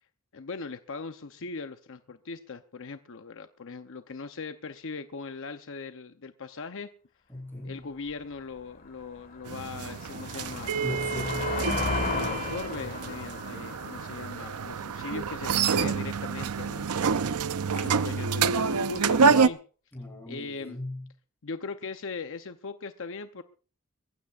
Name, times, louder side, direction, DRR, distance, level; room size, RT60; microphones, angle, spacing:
voice 1, 0.3-6.9 7.6-10.8 12.1-16.9 17.7-19.6 20.3-20.8 21.4-23.4, left 4 dB, 60° left, 8 dB, 0.8 m, -40 dB
voice 2, 7.3-7.8 10.7-11.6 19.9-21.1, left 1 dB, 10° left, 1 dB, 6.7 m, -38 dB
sound 1, 8.1-8.2 8.7-15.3, left 3 dB, 40° left, 1.8 m, -35 dB
sound 2, 9.5-19.5, right 5 dB, 90° right, 0.6 m, -27 dB
23.0 x 15.5 x 2.5 m, 0.38 s
head